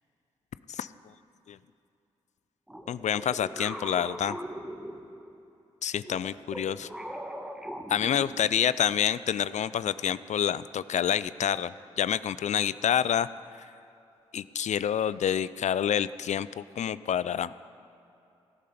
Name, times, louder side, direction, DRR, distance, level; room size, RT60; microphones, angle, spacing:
sound 1, 2.7-5.4 6.0-8.7, equal, 5° right, 1.7 m, -40 dB
voice 1, 2.9-4.4 5.8-6.9 7.9-13.3 14.3-17.6, left 9 dB, 60° left, 17 dB, 0.4 m, -28 dB
18.0 x 10.0 x 5.1 m, 2.7 s
hypercardioid pair, 40°, 14 cm